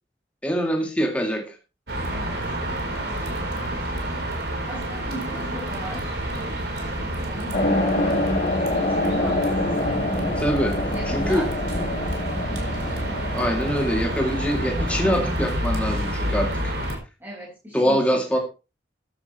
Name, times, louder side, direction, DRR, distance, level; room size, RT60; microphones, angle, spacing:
voice 1, 0.4-1.6 10.4-10.8 11.1-11.4 13.3-16.5 17.7-18.4, equal, 5° left, 1 dB, 2.1 m, -24 dB
sound 1, 1.9-17.0, right 1 dB, 60° right, 4.5 m, -28 dB
voice 2, 2.1-2.4 3.5-3.6 3.9-4.0 4.4-6.2 6.8-10.1 10.9-11.5 12.0-12.3 17.2-18.0 18.3-18.4, equal, 10° right, -5 dB, 5.7 m, -39 dB
Eerie Landscape Background Sound, 7.5-15.5, left 1 dB, 40° left, 4.9 m, -26 dB
15.0 x 11.0 x 3.3 m, 0.30 s
head